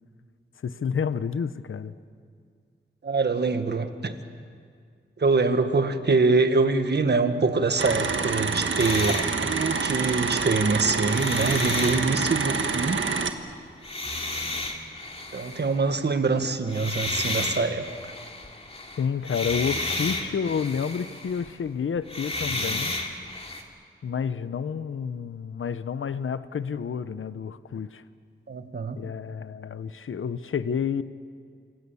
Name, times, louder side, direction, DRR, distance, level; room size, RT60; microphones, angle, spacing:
voice 1, 0.6-1.9 19.0-22.9 24.0-28.0 29.0-31.0, left 6 dB, 85° left, 13 dB, 0.9 m, -29 dB
voice 2, 3.0-4.2 5.2-13.0 15.3-17.8 28.5-29.0, right 3 dB, 55° right, 8 dB, 1.5 m, -24 dB
sound 1, 7.8-13.3, right 5 dB, 75° right, 1.5 m, -27 dB
sound 2, 8.8-10.6 11.0-13.2 13.8-15.8 16.7-21.6 22.0-23.6, left 2 dB, 30° left, 2.6 m, -33 dB
28.5 x 25.5 x 7.1 m, 2.1 s
wide cardioid pair, 120°, 20 cm